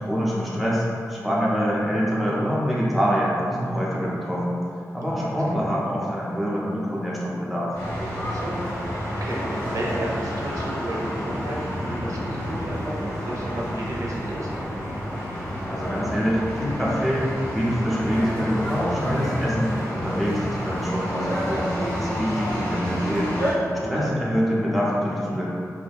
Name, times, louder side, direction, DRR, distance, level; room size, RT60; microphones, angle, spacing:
voice 1, 0.0-4.6 4.9-7.7 15.7-23.4 23.8-25.5, equal, ahead, -7 dB, 0.6 m, -25 dB
voice 2, 5.0-5.4 8.2-14.5 23.8-24.1, right 1 dB, 60° right, -4 dB, 0.5 m, -32 dB
sound 1, 7.7-23.5, equal, 70° left, 1.3 m, -30 dB
2.4 x 2.1 x 3.3 m, 2.6 s
wide cardioid pair, 115°, 6 cm